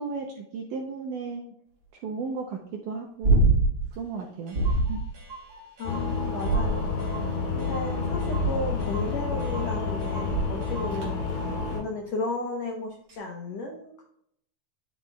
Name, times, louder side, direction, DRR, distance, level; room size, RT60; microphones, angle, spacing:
voice 1, 0.0-1.5 2.0-3.5 4.0-5.0, right 4 dB, 80° right, 2 dB, 1.8 m, -35 dB
sound 1, 3.2-3.9 4.5-5.1 6.4-7.1 8.3-8.8 10.3-10.7 13.1-13.2, right 2 dB, 30° right, 2.5 m, -23 dB
Clock, 3.9-4.0 4.2-4.3 4.5-11.1, right 3 dB, 60° right, 4.4 m, -45 dB
voice 2, 5.8-6.9 7.5-11.2 11.7-14.0, left 3 dB, 80° left, 1 dB, 1.5 m, -34 dB
sound 2, 5.8-11.8, left 4 dB, 60° left, 4.2 m, -29 dB
10.0 x 8.6 x 2.3 m, 0.71 s
omnidirectional pair, 4.5 m